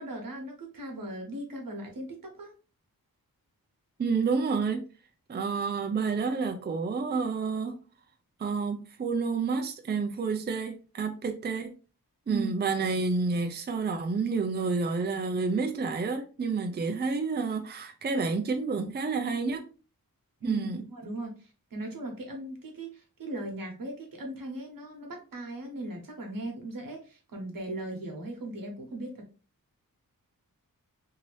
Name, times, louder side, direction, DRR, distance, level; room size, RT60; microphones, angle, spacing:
voice 1, 0.0-2.5 12.3-12.5 20.4-29.1, right 1 dB, 70° right, 1.1 m, -38 dB
voice 2, 4.0-4.8 5.3-7.8 8.4-11.8 12.3-19.7 20.4-20.8, right 4 dB, 30° right, 0.4 m, -29 dB
2.8 x 2.7 x 3.1 m
wide cardioid pair, 70°, 35 cm